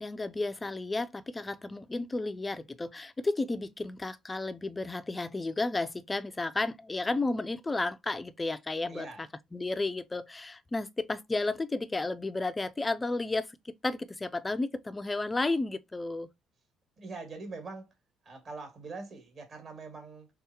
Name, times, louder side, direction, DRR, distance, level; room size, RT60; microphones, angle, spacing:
voice 1, 0.0-9.1 9.5-16.3, left 2 dB, 20° left, 0.3 m, -32 dB
voice 2, 8.9-9.3 17.0-17.9 18.2-20.3, right 3 dB, 45° right, 2.0 m, -43 dB
3.5 x 3.4 x 2.8 m
cardioid pair, 105°, 0 cm